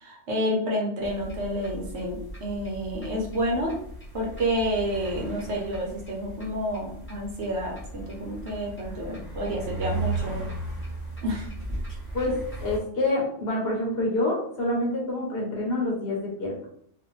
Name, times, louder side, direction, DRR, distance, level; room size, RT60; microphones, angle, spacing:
voice 1, 0.0-3.7 4.1-10.5 11.2-11.5, equal, 65° right, -1 dB, 1.0 m, -29 dB
sound 1, 1.0-12.8, right 2 dB, 10° left, 0.8 m, -36 dB
voice 2, 12.1-16.5, left 1 dB, 60° left, -1 dB, 0.9 m, -27 dB
2.5 x 2.4 x 3.0 m, 0.64 s
omnidirectional pair, 1.3 m